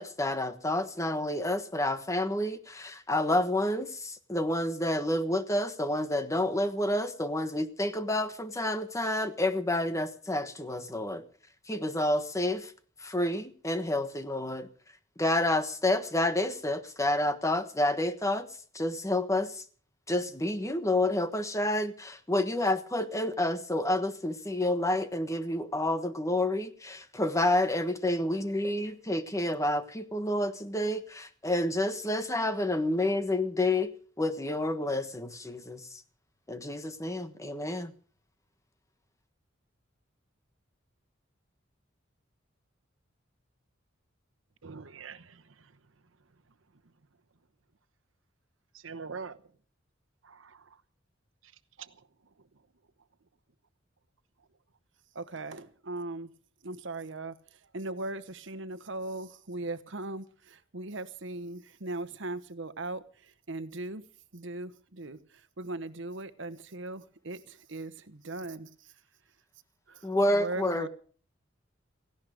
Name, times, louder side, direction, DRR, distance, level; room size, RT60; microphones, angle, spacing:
voice 1, 0.0-11.2 11.7-12.7 13.0-14.7 15.2-18.5 18.7-19.6 20.1-33.9 34.2-35.8 36.5-37.9 70.0-70.9, left 1 dB, 15° left, 1.3 m, -29 dB
voice 2, 44.6-45.4 48.7-49.4 50.2-50.6 51.8-51.9, right 5 dB, 90° right, 1.0 m, -43 dB
voice 3, 55.1-56.3 56.6-64.1 64.3-68.9 69.9-70.9, right 2 dB, 70° right, 1.2 m, -39 dB
17.5 x 16.0 x 5.1 m
head